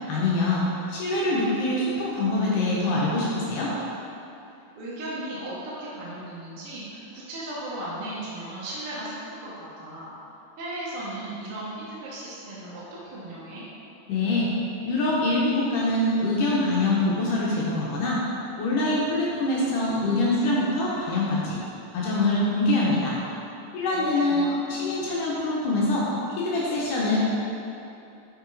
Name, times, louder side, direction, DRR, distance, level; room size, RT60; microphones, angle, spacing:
voice 1, 0.1-0.6 0.9-3.7 14.1-14.5 14.8-18.2 18.6-21.6 21.9-23.2 23.7-26.1 26.4-27.2, left 2 dB, 85° left, -5 dB, 2.3 m, -24 dB
voice 2, 4.8-10.1 10.6-13.6 23.9-24.7 26.7-26.8, right 1 dB, 65° right, -8 dB, 1.5 m, -36 dB
6.0 x 5.5 x 3.8 m, 2.9 s
omnidirectional pair, 3.6 m